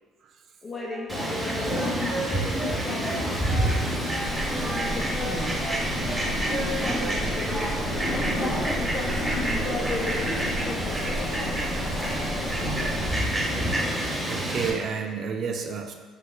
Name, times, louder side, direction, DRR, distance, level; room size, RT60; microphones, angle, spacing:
voice 1, 0.6-3.8 4.5-5.6 6.4-11.5, left 2 dB, 35° left, -5 dB, 0.5 m, -36 dB
Wind instrument woodwind instrument, 0.8-4.3 4.6-7.2 7.5-8.2, right 2 dB, 75° right, 0.9 m, -36 dB
Fowl, 1.1-14.7, equal, 15° right, 0.9 m, -28 dB
sound 1, 4.2-13.1, equal, 65° left, 0.9 m, -34 dB
voice 2, 14.3-15.9, right 6 dB, 60° right, 4 dB, 0.3 m, -32 dB
3.1 x 3.0 x 2.2 m, 1.4 s
supercardioid pair, 75°, 0 cm